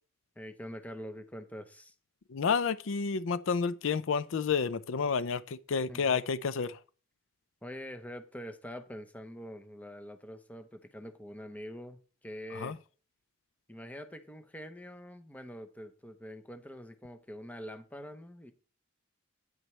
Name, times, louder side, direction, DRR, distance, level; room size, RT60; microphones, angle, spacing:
voice 1, 0.4-1.9 5.9-6.2 7.6-12.8 13.7-18.5, equal, 5° left, 0.8 m, -45 dB
voice 2, 2.3-6.8 12.6-12.7, left 5 dB, 70° left, 0.5 m, -30 dB
9.3 x 9.0 x 3.2 m
head